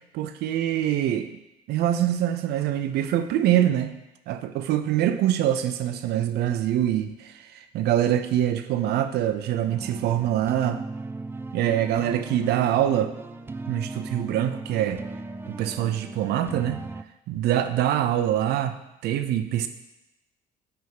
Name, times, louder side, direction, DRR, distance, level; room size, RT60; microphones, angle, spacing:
voice 1, 0.1-1.3 1.7-3.9 4.3-10.8 11.5-13.1 13.7-15.0 15.5-16.8 17.3-19.7, right 11 dB, 75° right, 9 dB, 0.6 m, -24 dB
sound 1, 9.7-17.0, right 3 dB, 15° right, 0.3 m, -37 dB
9.3 x 3.6 x 4.9 m, 0.92 s
cardioid pair, 110°, 17 cm